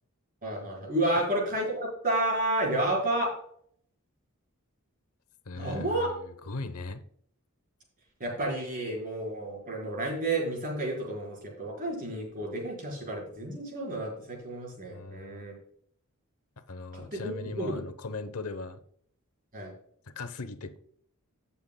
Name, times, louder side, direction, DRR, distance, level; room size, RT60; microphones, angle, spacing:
voice 1, 0.4-3.3 5.5-6.1 8.2-15.5 16.9-17.8 19.5-19.7, right 1 dB, 40° right, -2 dB, 4.3 m, -31 dB
voice 2, 5.5-6.1 6.5-7.0 14.9-15.4 16.7-18.8 20.2-20.8, left 3 dB, 85° left, 10 dB, 0.9 m, -38 dB
17.0 x 7.0 x 2.3 m, 0.64 s
head